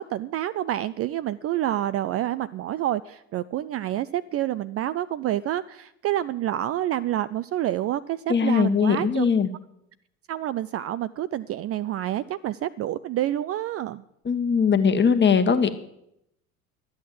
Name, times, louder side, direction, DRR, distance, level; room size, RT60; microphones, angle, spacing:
voice 1, 0.0-9.3 10.3-14.0, right 13 dB, 35° right, 16 dB, 0.4 m, -28 dB
voice 2, 8.3-9.5 14.2-15.7, left 6 dB, 25° left, 8 dB, 1.5 m, -20 dB
12.5 x 8.8 x 7.5 m, 0.79 s
hypercardioid pair, 65°, 43 cm